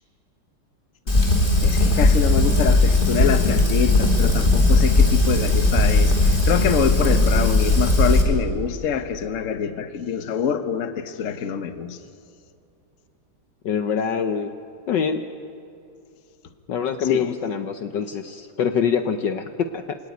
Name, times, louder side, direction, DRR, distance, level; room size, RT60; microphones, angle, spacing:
Fire, 1.1-8.2, left 2 dB, 25° left, 2.9 m, -18 dB
voice 1, 1.6-12.0 17.1-17.3, left 7 dB, 45° left, 9 dB, 1.3 m, -25 dB
voice 2, 13.6-14.5 14.9-15.2 16.7-20.0, left 7 dB, 65° left, 8 dB, 1.4 m, -24 dB
26.0 x 18.0 x 9.5 m, 2.5 s
omnidirectional pair, 2.3 m